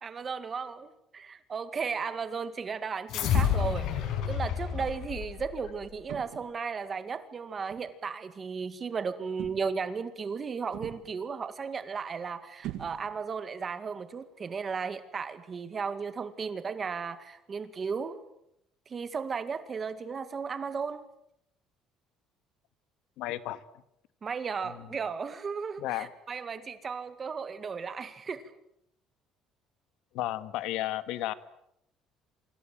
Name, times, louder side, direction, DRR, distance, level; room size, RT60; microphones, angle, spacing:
voice 1, 0.0-3.9 4.3-18.2 18.9-21.0 24.2-28.5, right 5 dB, 25° right, 1.9 m, -35 dB
sound 1, 3.1-5.8, left 9 dB, 55° left, 5.7 m, -29 dB
sound 2, 3.3-3.8 4.7-5.0 6.1-6.6 7.7-7.9 9.4-9.9 10.7-11.2 12.6-13.3, right 13 dB, 65° right, 2.2 m, -41 dB
voice 2, 23.2-23.6 24.6-24.9 25.8-26.1 30.1-31.3, left 15 dB, 70° left, 1.7 m, -33 dB
28.0 x 25.5 x 7.7 m
cardioid pair, 170°, 0 cm